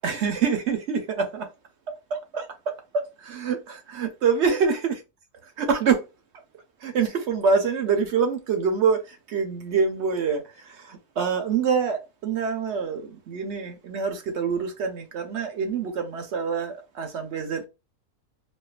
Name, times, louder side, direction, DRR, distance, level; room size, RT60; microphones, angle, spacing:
voice 1, 0.0-1.5 2.1-2.5 3.2-5.0 5.6-6.0 6.8-9.0 9.3-10.4 10.9-17.7, right 6 dB, 60° right, 0.8 m, -25 dB
4.3 x 2.3 x 2.4 m
omnidirectional pair, 1.6 m